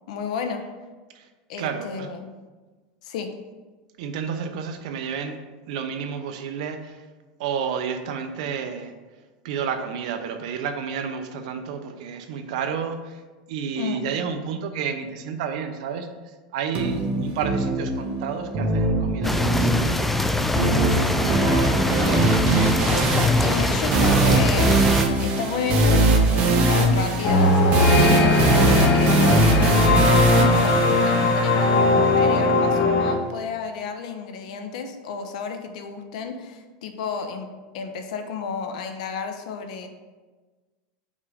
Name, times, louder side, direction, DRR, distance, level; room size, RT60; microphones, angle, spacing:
voice 1, 0.1-0.6 1.5-2.3 3.0-3.3 13.7-14.1 23.4-27.6 28.0-37.5 37.7-39.9, left 5 dB, 75° left, 6 dB, 0.9 m, -31 dB
voice 2, 1.6-2.1 4.0-5.4 5.7-7.0 7.4-8.9 9.4-13.2 13.5-16.1 16.5-20.3 20.6-21.9, right 6 dB, 70° right, 7 dB, 0.8 m, -31 dB
sound 1, 16.7-31.7, right 2 dB, 35° right, 1.4 m, -21 dB
sound 2, 19.2-25.0, left 1 dB, 5° left, 0.4 m, -23 dB
sound 3, 27.2-33.1, left 2 dB, 40° left, 1.1 m, -19 dB
5.4 x 4.8 x 6.5 m, 1.3 s
supercardioid pair, 145°, 4 cm